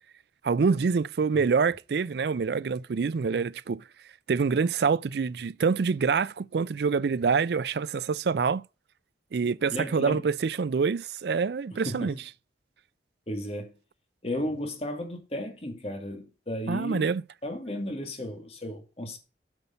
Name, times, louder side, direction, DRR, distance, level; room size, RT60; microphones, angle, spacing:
voice 1, 0.4-3.8 4.3-8.6 9.3-12.1 16.7-17.2, right 5 dB, 70° right, 0.4 m, -26 dB
voice 2, 9.7-10.2 11.8-12.2 13.3-13.7 14.2-17.1 17.4-19.2, left 1 dB, 35° left, 2.2 m, -34 dB
8.1 x 7.0 x 5.2 m
head